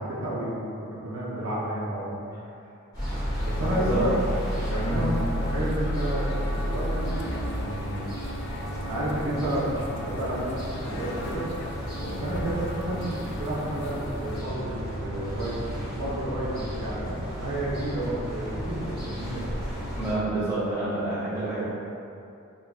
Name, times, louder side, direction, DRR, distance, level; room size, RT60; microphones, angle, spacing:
voice 1, 0.0-2.1 3.3-4.1 4.6-8.0 8.8-11.4 12.0-19.4, right 1 dB, 70° right, -8 dB, 0.7 m, -31 dB
sound 1, 2.9-20.1, equal, 20° left, 1.5 m, -32 dB
sound 2, 3.4-14.4, left 1 dB, 55° left, 0.3 m, -40 dB
voice 2, 3.5-4.1 4.7-5.0 19.9-21.6, right 2 dB, 15° right, -12 dB, 1.3 m, -29 dB
5.4 x 2.5 x 2.4 m, 2.6 s
head